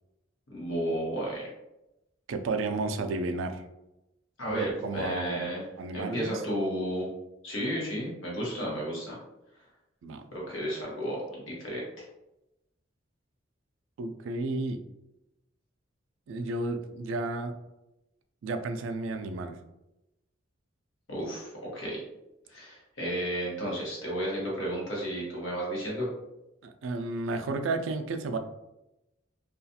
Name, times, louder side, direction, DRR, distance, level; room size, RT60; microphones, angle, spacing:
voice 1, 0.5-1.5 4.4-5.7 5.9-7.1 7.4-9.2 9.5-9.6 10.3-12.0 21.1-22.0 22.5-26.1, equal, 85° left, -4 dB, 1.0 m, -33 dB
voice 2, 2.3-3.6 4.5-5.5 5.8-6.4 10.0-10.2 14.0-14.8 16.3-17.5 18.4-19.6 26.6-28.4, right 3 dB, 75° right, 7 dB, 0.3 m, -32 dB
2.4 x 2.3 x 2.6 m, 0.92 s
head